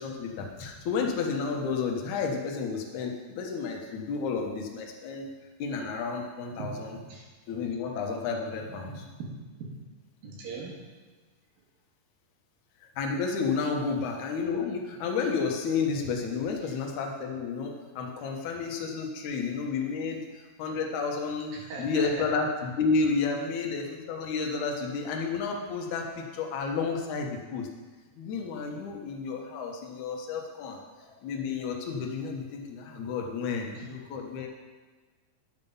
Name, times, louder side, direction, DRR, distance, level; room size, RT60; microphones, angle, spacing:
voice 1, 0.0-5.3 5.6-7.0 7.5-9.1 13.0-27.7 28.2-30.8 31.2-34.5, left 4 dB, 65° left, 1 dB, 2.3 m, -31 dB
voice 2, 6.5-7.2 8.8-9.3 9.6-9.7 10.2-10.8 16.6-16.7 18.2-18.4 21.5-22.3 31.0-31.1 33.5-33.9, right 2 dB, 70° right, -3 dB, 3.4 m, -41 dB
10.5 x 7.6 x 5.5 m, 1.3 s
omnidirectional pair, 4.3 m